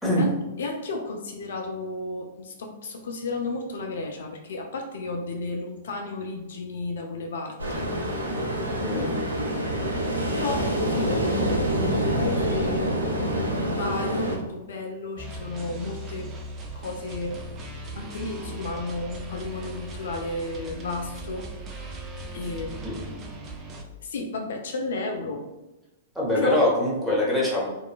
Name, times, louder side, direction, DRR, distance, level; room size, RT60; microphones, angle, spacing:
voice 1, 0.2-7.9 8.9-9.7 10.2-12.8 13.1-16.3 16.8-17.4 18.0-21.5 22.3-23.3 24.0-25.5 26.3-26.7, left 3 dB, 65° left, 3 dB, 0.3 m, -33 dB
Ocean, 7.6-14.4, right 1 dB, 85° right, 0.5 m, -26 dB
voice 2, 8.7-9.1 26.1-27.7, left 1 dB, ahead, -5 dB, 1.0 m, -23 dB
sound 1, 15.2-23.8, right 1 dB, 30° right, 0.4 m, -38 dB
2.8 x 2.2 x 2.4 m, 0.99 s
figure-of-eight pair, 105°, 0 cm